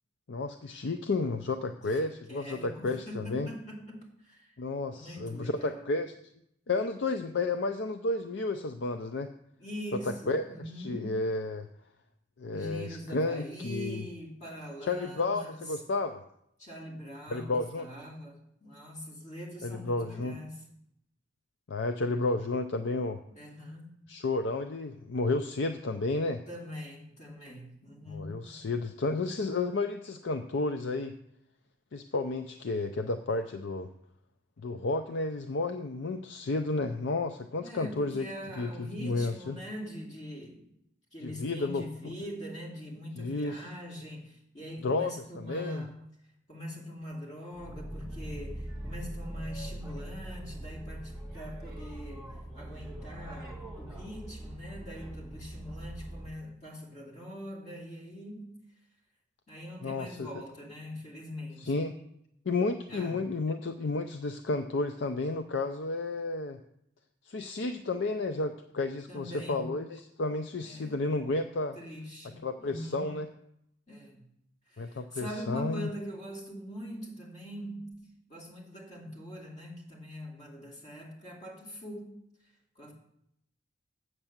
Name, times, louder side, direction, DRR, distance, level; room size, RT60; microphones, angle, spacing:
voice 1, 0.3-3.5 4.6-6.1 6.7-9.3 10.1-10.4 10.8-11.7 12.4-14.1 14.8-16.2 17.3-17.9 19.6-20.4 21.7-23.2 24.1-26.4 28.1-31.1 31.9-33.9 34.6-38.3 38.6-39.6 41.2-42.1 43.2-43.7 44.8-45.8 59.8-60.3 61.6-62.0 62.5-66.6 67.3-71.8 72.4-73.3 74.8-75.9, left 3 dB, 60° left, 8 dB, 0.5 m, -32 dB
voice 2, 1.7-4.6 4.9-5.9 9.6-11.2 12.5-15.6 16.6-20.6 23.3-23.9 26.5-28.4 37.6-40.6 41.1-45.9 46.5-58.6 59.5-61.9 62.9-63.3 69.1-69.7 70.6-71.0 71.7-73.1 73.9-74.2 74.7-82.2 82.8-82.9, equal, 35° left, -2 dB, 2.6 m, -42 dB
Boat Water vehicle, 47.5-56.4, right 1 dB, ahead, 1.9 m, -42 dB
7.9 x 6.6 x 7.3 m, 0.76 s
head